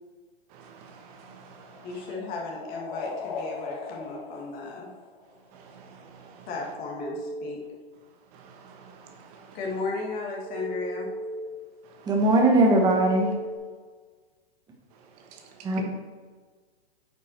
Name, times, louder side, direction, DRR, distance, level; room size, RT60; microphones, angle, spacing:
voice 1, 0.5-1.9 5.5-6.5 8.3-9.6, right 5 dB, 40° right, 3 dB, 1.3 m, -50 dB
sound 1, 0.8-5.6, left 4 dB, 50° left, 1.5 m, -39 dB
voice 2, 1.8-4.9 6.5-7.6 9.5-11.1, left 3 dB, 30° left, -1 dB, 1.8 m, -34 dB
Telephone, 7.0-7.5 10.5-11.5 12.7-13.6, right 2 dB, 60° right, 2.4 m, -36 dB
voice 3, 12.1-13.3 15.6-15.8, right 2 dB, 15° right, 1 dB, 1.1 m, -20 dB
8.8 x 5.6 x 4.4 m, 1.5 s
hypercardioid pair, 150°, 31 cm